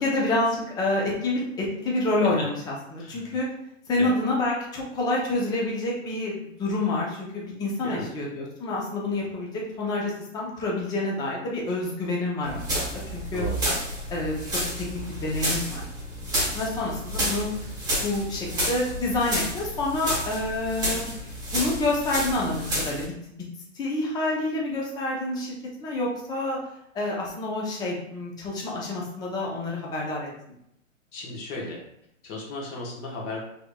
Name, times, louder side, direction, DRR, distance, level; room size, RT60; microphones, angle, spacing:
voice 1, 0.0-2.5 2.9-3.5 3.9-9.5 9.8-13.5 14.1-15.8 16.5-17.5 18.0-21.1 21.5-23.4 23.7-26.6 26.9-30.3, left 2 dB, 10° left, -3 dB, 0.7 m, -28 dB
voice 2, 3.0-3.4 4.0-4.2 7.8-8.1 13.3-13.6 31.1-31.8 32.2-33.4, left 2 dB, 25° left, -3 dB, 1.2 m, -35 dB
sound 1, 12.4-23.0, equal, 10° right, 1.3 m, -30 dB
5.9 x 3.5 x 2.3 m, 0.75 s
hypercardioid pair, 145°, 39 cm